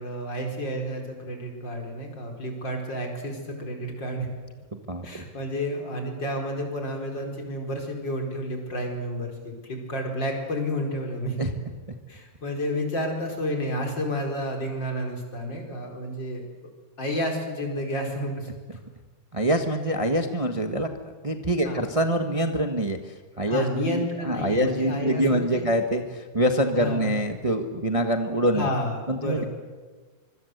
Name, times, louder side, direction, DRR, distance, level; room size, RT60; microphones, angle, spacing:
voice 1, 0.0-4.3 5.0-11.4 12.1-16.4 17.0-18.5 21.6-21.8 23.5-25.6 26.8-27.1 28.6-29.5, equal, 60° left, 3 dB, 5.2 m, -30 dB
voice 2, 4.7-5.2 11.4-11.5 19.3-20.9 21.2-28.7 29.1-29.4, right 1 dB, 20° right, 6 dB, 1.3 m, -25 dB
25.5 x 25.0 x 8.0 m, 1.4 s
omnidirectional pair, 2.3 m